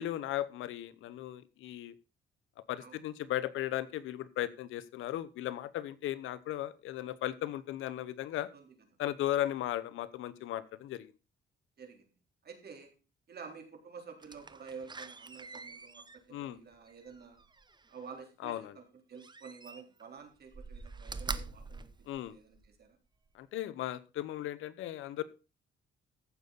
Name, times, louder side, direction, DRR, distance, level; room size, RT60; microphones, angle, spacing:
voice 1, 0.0-1.9 2.7-8.5 9.0-11.1 16.3-16.6 18.4-18.7 22.1-22.4 23.3-25.2, left 13 dB, 85° left, 16 dB, 0.9 m, -36 dB
voice 2, 8.3-8.7 11.8-12.1 12.4-12.9 13.3-17.4 17.9-23.0, right 5 dB, 55° right, 4 dB, 3.7 m, -50 dB
Slam, 14.2-18.1 19.2-20.1 20.5-22.8 23.3-23.4, right 4 dB, 20° right, 0.9 m, -45 dB
15.0 x 7.0 x 4.1 m, 0.31 s
cardioid pair, 90°, 20 cm